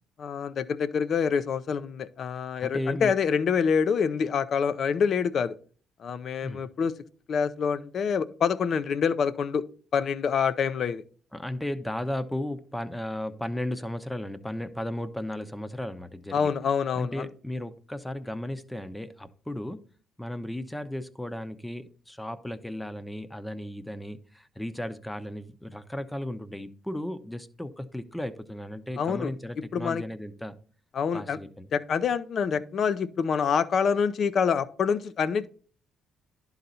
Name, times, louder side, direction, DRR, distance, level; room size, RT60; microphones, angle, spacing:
voice 1, 0.2-5.6 6.0-6.9 7.3-9.6 9.9-11.0 16.3-17.3 29.0-29.3 29.7-30.0 30.9-31.4 31.7-35.5, left 6 dB, 55° left, 13 dB, 0.6 m, -26 dB
voice 2, 2.6-3.1 6.4-6.6 11.3-16.5 17.0-19.8 20.2-30.5 31.1-31.7, left 1 dB, 10° left, 11 dB, 0.7 m, -35 dB
11.0 x 4.0 x 4.2 m, 0.41 s
supercardioid pair, 65°, 0 cm